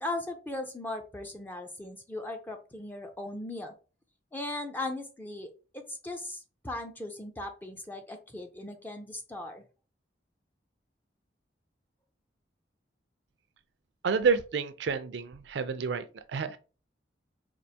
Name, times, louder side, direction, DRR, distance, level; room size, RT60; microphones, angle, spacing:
voice 1, 0.0-3.7 4.3-5.5 5.7-9.6, left 2 dB, 10° left, 0.4 m, -38 dB
voice 2, 14.0-16.6, right 5 dB, 70° right, 0.4 m, -29 dB
4.4 x 2.4 x 2.7 m
head